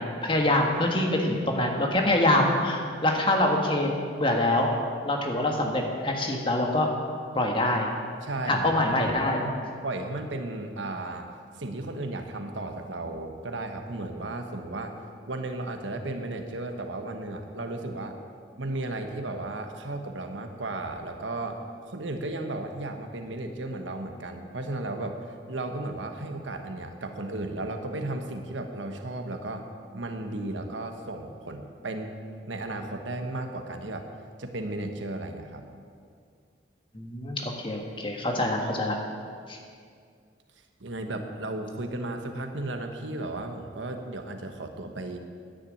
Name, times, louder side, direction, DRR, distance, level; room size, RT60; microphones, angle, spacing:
voice 1, 0.0-4.7 5.0-6.9 7.3-7.9 8.5-9.4 36.9-39.0 39.5-39.6, left 1 dB, 25° left, 1 dB, 1.6 m, -25 dB
voice 2, 8.2-8.7 9.4-9.5 9.8-15.0 15.3-18.2 18.6-21.6 21.9-25.2 25.5-29.7 29.9-32.1 32.4-34.1 34.4-35.8 40.8-45.2, right 2 dB, 85° right, 5 dB, 1.2 m, -34 dB
10.5 x 9.9 x 8.5 m, 2.2 s
head